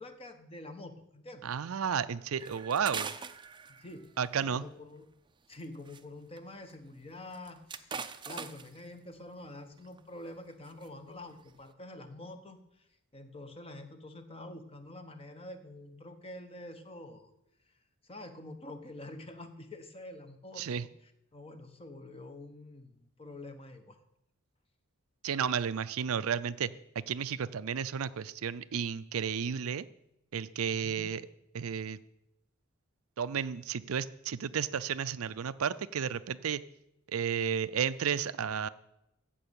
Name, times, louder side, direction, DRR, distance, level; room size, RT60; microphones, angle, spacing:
voice 1, 0.0-1.5 3.8-4.1 4.4-5.1 5.5-8.0 8.2-12.9 13.1-17.3 18.0-20.7 21.3-24.0 30.7-31.1, left 1 dB, 25° left, 7 dB, 1.2 m, -47 dB
voice 2, 1.4-3.1 4.2-4.7 20.6-20.8 25.2-26.7 27.1-29.9 30.3-31.2 31.5-32.0 33.2-36.6 37.1-38.7, right 7 dB, 70° right, 15 dB, 0.5 m, -32 dB
sound 1, 2.4-4.2 5.5-6.0 6.4-6.5 6.7-6.8 7.2-8.8 9.8-10.0 10.5-10.9 11.3-11.6, right 5 dB, 20° right, 0.6 m, -41 dB
14.5 x 5.4 x 8.8 m, 0.83 s
head